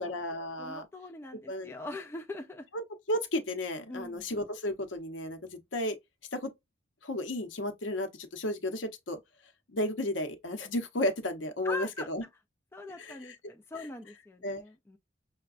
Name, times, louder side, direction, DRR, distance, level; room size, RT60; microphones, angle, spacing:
voice 1, 0.0-0.9 1.5-1.7 2.7-6.0 6.3-6.5 7.0-9.2 9.7-12.2 13.0-13.2 14.4-14.6, left 1 dB, 75° left, 0.8 m, -33 dB
voice 2, 0.6-2.7 3.9-4.3 11.6-12.1 12.7-15.0, left 2 dB, 15° left, 0.4 m, -42 dB
5.6 x 2.2 x 2.4 m
head